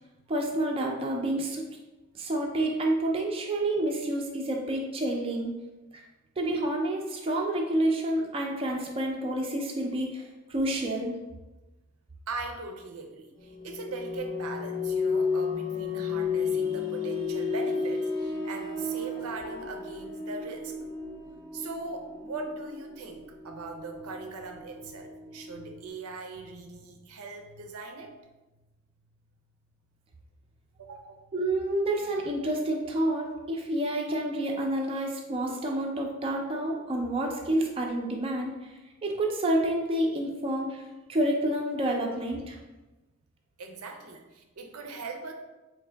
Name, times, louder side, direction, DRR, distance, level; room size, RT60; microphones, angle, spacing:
voice 1, 0.3-1.6 2.1-5.5 5.9-6.0 6.4-11.2 31.3-38.7 39.0-40.8 41.1-42.6, right 1 dB, 25° right, 0 dB, 0.4 m, -29 dB
voice 2, 12.3-20.8 21.5-28.1 30.8-31.2 43.6-45.3, right 3 dB, 85° right, 4 dB, 0.5 m, -40 dB
sound 1, 13.4-25.9, left 4 dB, 20° left, 0.6 m, -33 dB
3.6 x 2.6 x 3.3 m, 1.1 s
head